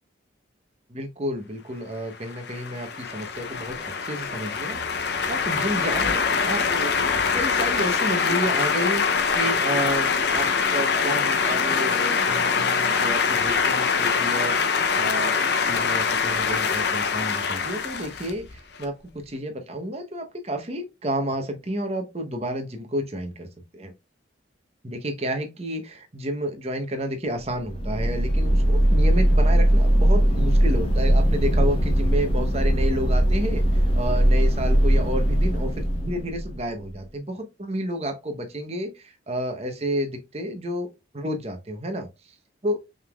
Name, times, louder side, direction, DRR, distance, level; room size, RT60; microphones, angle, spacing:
voice 1, 0.9-9.0 9.3-10.5 10.7-14.6 14.9-23.5 23.7-23.9 24.8-40.9 41.1-42.1 42.6-42.8, equal, 35° right, 0.8 m, -30 dB
sound 1, 2.2-18.8, left 5 dB, 55° left, 0.6 m, -24 dB
sound 2, 27.5-36.8, equal, 30° left, 1.1 m, -20 dB
5.4 x 3.5 x 2.3 m
head